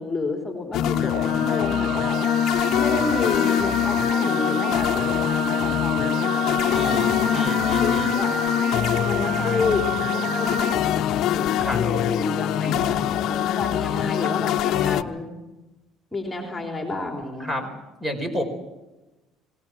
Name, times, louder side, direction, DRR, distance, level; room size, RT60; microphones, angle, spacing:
voice 1, 0.0-2.2 2.8-7.5 7.8-8.3 9.0-15.3 16.1-17.7, left 3 dB, 15° left, 2 dB, 3.6 m, -30 dB
sound 1, 0.7-15.0, left 11 dB, 65° left, 0.8 m, -23 dB
sound 2, 0.8-10.7, right 16 dB, 80° right, 3.3 m, -32 dB
voice 2, 6.7-8.1 11.6-11.8 12.6-12.9 14.2-14.3 14.8-14.9 17.4-17.6 18.0-18.4, equal, 15° right, 7 dB, 5.4 m, -30 dB
27.5 x 18.5 x 6.3 m, 1.0 s
supercardioid pair, 100°, 0 cm